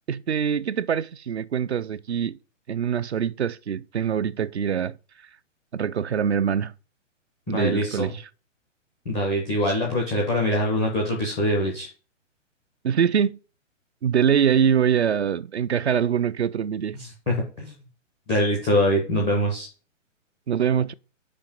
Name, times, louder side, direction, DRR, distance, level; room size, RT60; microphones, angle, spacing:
voice 1, 0.1-2.4 2.7-5.0 5.7-6.7 7.5-8.2 12.8-13.4 14.0-17.0 20.5-20.9, right 8 dB, 60° right, 0.5 m, -24 dB
voice 2, 7.5-8.1 9.0-11.9 16.9-17.7 18.3-19.7, equal, ahead, 0.4 m, -24 dB
5.3 x 5.0 x 5.2 m
figure-of-eight pair, 125°, 38 cm